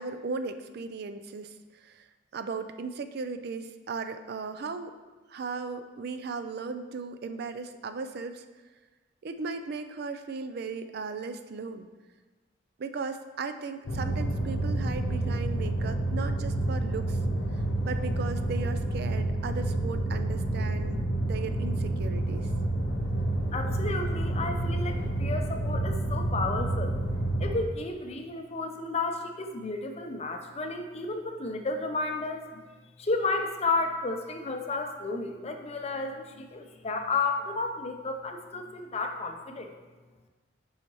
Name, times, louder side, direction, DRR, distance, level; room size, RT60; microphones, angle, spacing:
voice 1, 0.0-2.0 2.3-5.0 5.3-8.4 9.2-11.9 12.8-17.2 17.8-22.5, right 4 dB, 55° right, 9 dB, 0.4 m, -37 dB
sound 1, 13.9-27.6, right 1 dB, 75° left, 0.7 m, -29 dB
voice 2, 23.5-27.0 27.4-32.6 33.0-39.7, left 3 dB, 35° left, 5 dB, 0.6 m, -32 dB
8.2 x 5.6 x 3.0 m, 1.3 s
head